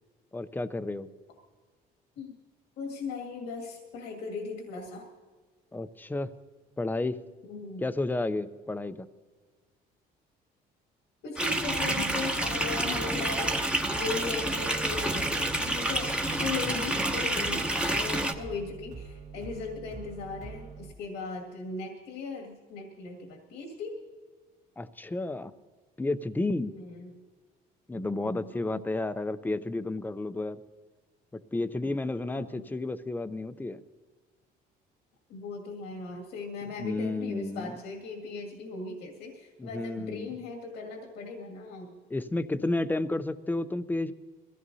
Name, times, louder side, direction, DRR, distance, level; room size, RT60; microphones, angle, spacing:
voice 1, 0.3-1.1 5.7-6.3 6.8-7.2 7.8-9.1 16.7-16.9 24.8-25.5 26.0-26.7 27.9-30.6 31.5-33.8 36.8-37.8 39.6-40.3 42.1-44.1, left 2 dB, 10° left, 12 dB, 0.6 m, -31 dB
voice 2, 2.8-5.1 7.4-7.8 11.2-13.6 13.9-24.0 26.6-27.1 27.9-28.8 32.2-32.7 35.3-42.0, left 4 dB, 85° left, 2 dB, 2.1 m, -38 dB
sound 1, 11.4-18.3, right 1 dB, 5° right, 1.0 m, -29 dB
sound 2, 11.7-20.9, right 5 dB, 45° right, 2.4 m, -44 dB
22.0 x 15.5 x 2.8 m, 1.4 s
cardioid pair, 110°, 17 cm